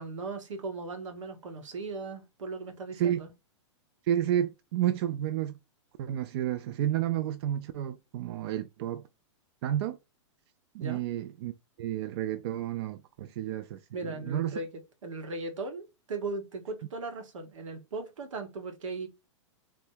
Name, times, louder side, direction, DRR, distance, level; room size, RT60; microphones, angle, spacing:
voice 1, 0.0-3.3 10.8-11.0 13.2-13.3 13.9-14.7 15.0-19.1, right 3 dB, 85° right, 1.2 m, -38 dB
voice 2, 4.1-5.5 6.0-9.0 9.6-10.0 10.7-11.5 11.8-14.6, right 11 dB, 55° right, 0.4 m, -31 dB
3.5 x 2.1 x 4.3 m
hypercardioid pair, 125°, 16 cm